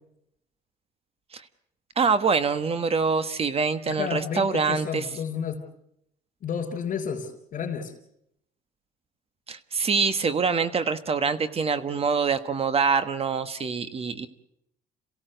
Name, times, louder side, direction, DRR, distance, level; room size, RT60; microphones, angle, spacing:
voice 1, 2.0-5.1 9.5-14.3, right 5 dB, 35° right, 12 dB, 1.3 m, -25 dB
voice 2, 3.8-5.6 6.4-7.9, left 7 dB, 55° left, -3 dB, 4.2 m, -31 dB
27.5 x 17.0 x 7.9 m, 0.77 s
cardioid pair, 110°, 17 cm